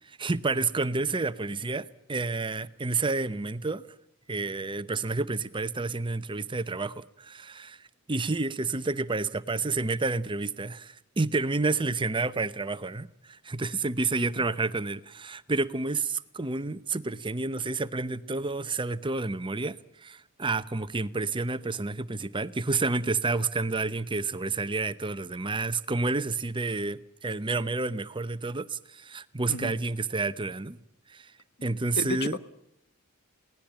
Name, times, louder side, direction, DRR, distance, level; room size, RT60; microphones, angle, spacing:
voice 1, 0.0-3.8 4.3-30.8 31.1-31.3 31.6-32.4, right 3 dB, 20° right, 0.8 m, -30 dB
voice 2, 32.0-32.4, left 2 dB, 50° left, 1.3 m, -32 dB
22.5 x 18.0 x 8.9 m
head